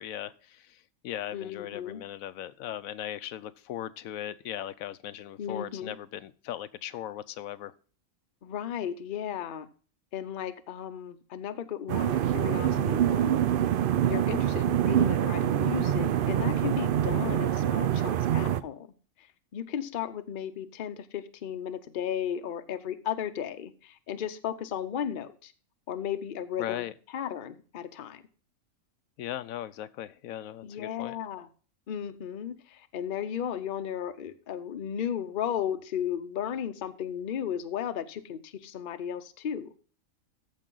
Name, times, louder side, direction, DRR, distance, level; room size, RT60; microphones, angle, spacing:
voice 1, 0.0-7.7 26.6-26.9 29.2-31.2, left 12 dB, 85° left, 14 dB, 1.0 m, -38 dB
voice 2, 1.3-2.0 5.4-6.0 8.4-9.7 10.1-13.5 14.0-18.9 19.2-19.3 19.5-25.5 25.9-28.2 30.6-31.5 31.9-39.7, left 9 dB, 45° left, 10 dB, 0.7 m, -35 dB
sound 1, 11.9-18.6, right 10 dB, 65° right, 0.5 m, -25 dB
14.0 x 5.4 x 3.8 m, 0.40 s
omnidirectional pair, 1.4 m